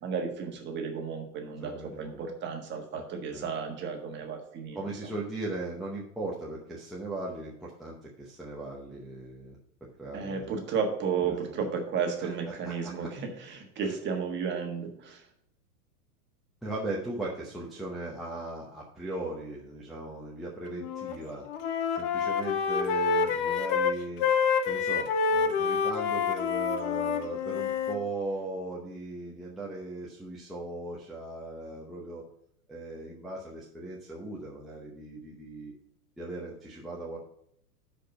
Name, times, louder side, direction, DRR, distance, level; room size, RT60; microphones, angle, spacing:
voice 1, 0.0-1.7 2.0-4.8 10.1-15.2, right 6 dB, 25° right, 2 dB, 1.5 m, -33 dB
voice 2, 1.6-2.3 3.3-3.5 4.7-9.6 10.0-10.5 11.2-11.4 12.2-13.1 13.8-13.9 16.6-21.4 21.9-24.3 24.7-32.2 32.7-35.7 36.2-37.2, right 2 dB, ahead, -6 dB, 0.8 m, -38 dB
Wind instrument woodwind instrument, 20.7-21.2 21.4-28.0, left 6 dB, 25° left, 0.4 m, -27 dB
6.5 x 5.1 x 6.7 m, 0.72 s
supercardioid pair, 140°, 47 cm